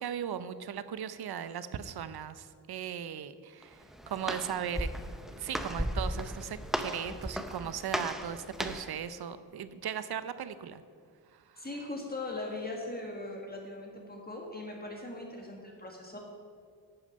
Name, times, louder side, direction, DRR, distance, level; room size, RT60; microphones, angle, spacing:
voice 1, 0.0-4.9 5.3-10.8 11.3-11.7, right 9 dB, 55° right, 13 dB, 0.7 m, -38 dB
Walk footsteps, 3.6-9.0, equal, ahead, 0.7 m, -36 dB
voice 2, 11.5-16.2, left 2 dB, 20° left, 0 dB, 1.6 m, -40 dB
11.0 x 6.5 x 5.3 m, 2.1 s
cardioid pair, 70°, 44 cm